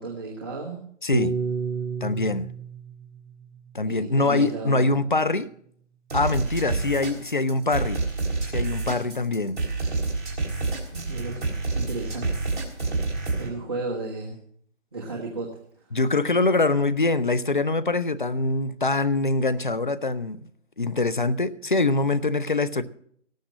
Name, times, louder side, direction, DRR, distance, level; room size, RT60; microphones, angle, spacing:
voice 1, 0.0-0.8 3.9-5.0 10.9-12.3 12.7-13.0 13.4-14.4 14.9-15.6, right 3 dB, 20° right, 1.5 m, -34 dB
voice 2, 1.0-1.3 2.0-2.5 3.7-5.5 6.1-8.0 8.5-9.6 15.9-20.5 20.8-22.8, left 3 dB, 40° left, 0.6 m, -24 dB
Piano, 1.1-5.6, right 5 dB, 65° right, 1.1 m, -33 dB
sound 1, 6.1-13.5, right 3 dB, 40° right, 3.8 m, -28 dB
18.0 x 7.1 x 6.3 m
figure-of-eight pair, 170°, 37 cm